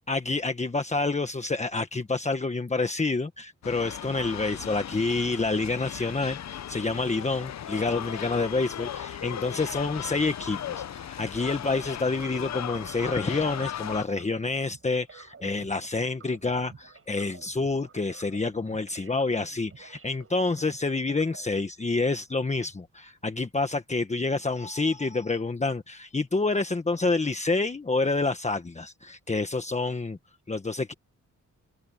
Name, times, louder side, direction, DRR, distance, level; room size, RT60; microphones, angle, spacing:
voice 1, 0.1-30.2 30.5-30.9, left 3 dB, 20° left, 1.4 m, -28 dB
sound 1, 3.6-14.0, left 10 dB, 60° left, 0.8 m, -37 dB
sound 2, 12.0-21.6, right 5 dB, 45° right, 7.6 m, -52 dB
wide cardioid pair, 110°, 31 cm